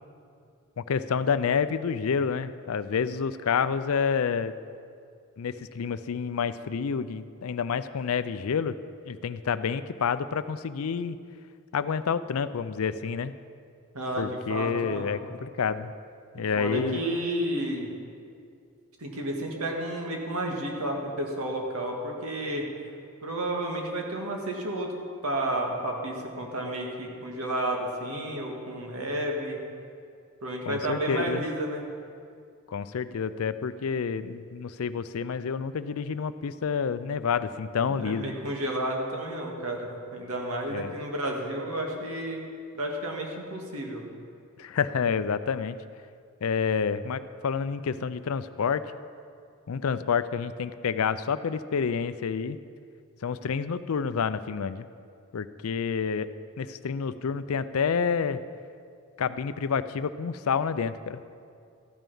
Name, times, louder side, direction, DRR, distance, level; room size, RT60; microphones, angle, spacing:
voice 1, 0.8-4.5 5.4-8.8 9.1-11.2 11.7-13.3 14.2-15.9 16.3-17.0 30.7-31.4 32.7-38.3 40.7-40.9 44.6-45.8 46.4-48.8 49.7-52.6 53.2-54.9 55.3-56.3 56.6-58.4 59.2-61.2, left 6 dB, 80° left, 13 dB, 0.4 m, -28 dB
voice 2, 13.9-15.2 16.3-17.9 19.0-22.6 23.2-24.9 25.2-29.6 30.4-31.8 37.8-42.4 42.8-44.0, right 1 dB, 90° right, 1 dB, 1.8 m, -31 dB
13.5 x 9.1 x 5.5 m, 2.4 s
head